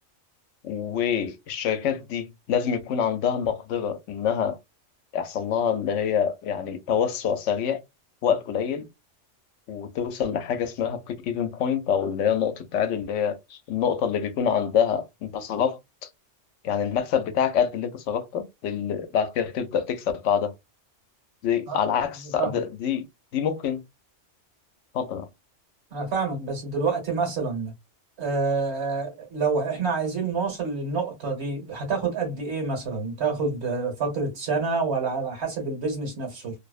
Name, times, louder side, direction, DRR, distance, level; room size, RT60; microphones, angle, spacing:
voice 1, 0.6-4.6 5.1-7.8 8.2-8.9 9.7-15.8 16.6-20.5 21.4-23.0 23.3-23.8 24.9-25.3, left 8 dB, 80° left, 0.9 m, -26 dB
voice 2, 25.9-27.7 28.2-36.5, right 4 dB, 60° right, 1.4 m, -27 dB
2.7 x 2.0 x 2.3 m
omnidirectional pair, 1.3 m